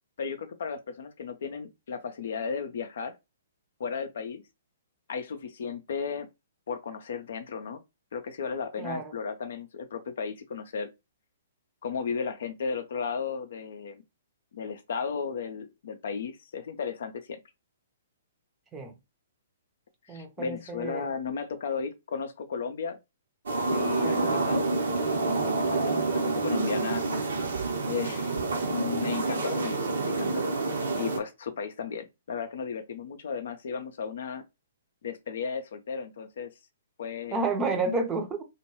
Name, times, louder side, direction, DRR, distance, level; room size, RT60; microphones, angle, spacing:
voice 1, 0.2-3.1 3.8-4.4 5.1-6.3 6.7-7.8 8.1-10.9 11.8-14.0 14.5-17.4 20.1-23.0 23.7-24.7 25.2-27.1 27.8-28.3 28.6-29.8 30.0-30.5 30.9-34.4 35.0-36.5 37.0-37.4, left 6 dB, 55° left, 0.4 m, -34 dB
voice 2, 8.8-9.1 18.7-18.9 20.1-21.1 24.0-24.4 37.3-38.4, right 3 dB, 15° right, 0.6 m, -31 dB
sound 1, 23.5-31.2, right 3 dB, 65° right, 0.7 m, -28 dB
2.2 x 2.2 x 3.0 m
figure-of-eight pair, 120°, 0 cm